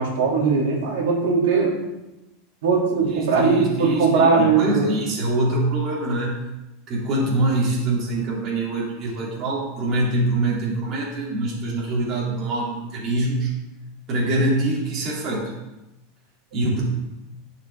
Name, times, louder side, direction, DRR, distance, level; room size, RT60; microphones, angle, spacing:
voice 1, 0.0-1.8 2.6-4.9, right 5 dB, 85° right, -3 dB, 2.5 m, -20 dB
voice 2, 3.0-6.4 6.9-13.5 14.1-15.5 16.5-16.8, right 1 dB, 40° right, -4 dB, 2.7 m, -24 dB
10.5 x 5.9 x 3.5 m, 0.98 s
supercardioid pair, 140°, 0 cm